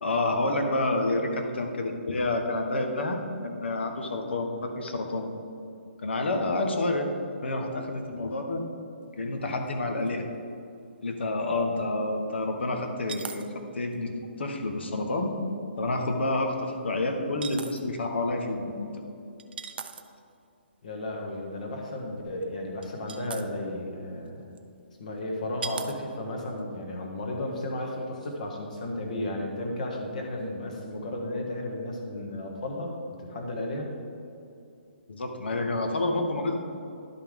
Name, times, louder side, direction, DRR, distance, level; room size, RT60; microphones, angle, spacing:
voice 1, 0.0-5.2 6.0-7.1 7.4-8.6 9.2-10.3 11.0-13.5 13.7-14.1 14.4-15.4 15.8-19.0 35.1-36.5, left 2 dB, 65° left, 4 dB, 1.2 m, -29 dB
sound 1, 9.7-9.8 10.1-10.2 13.0-13.5 13.9-14.0 15.8-15.9 17.4-17.8 19.4-20.2 22.4-22.5 22.8-23.4 24.6-24.7 25.6-26.0 26.4-26.6, right 6 dB, 55° right, 0.5 m, -38 dB
voice 2, 20.8-24.5 25.0-32.9 33.2-33.9, left 1 dB, 40° left, 1 dB, 1.3 m, -34 dB
11.5 x 5.6 x 3.6 m, 2.6 s
hypercardioid pair, 180°, 6 cm